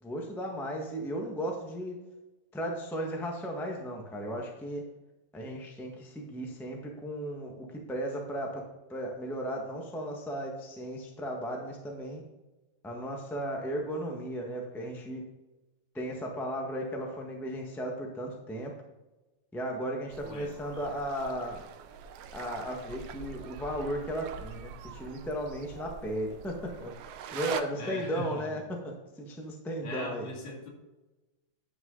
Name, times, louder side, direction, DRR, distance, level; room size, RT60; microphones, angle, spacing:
voice 1, 0.0-1.9 2.5-4.8 5.3-8.6 8.9-12.2 12.8-15.2 15.9-18.7 19.5-21.6 22.3-26.9 27.3-28.9 29.2-30.3, equal, ahead, 0 dB, 0.6 m, -35 dB
sound 1, 20.1-27.6, right 8 dB, 75° right, 1.4 m, -44 dB
voice 2, 20.2-20.5 27.8-28.7 29.8-30.7, left 1 dB, 70° left, -1 dB, 3.6 m, -40 dB
10.5 x 6.3 x 3.9 m, 1.1 s
omnidirectional pair, 3.3 m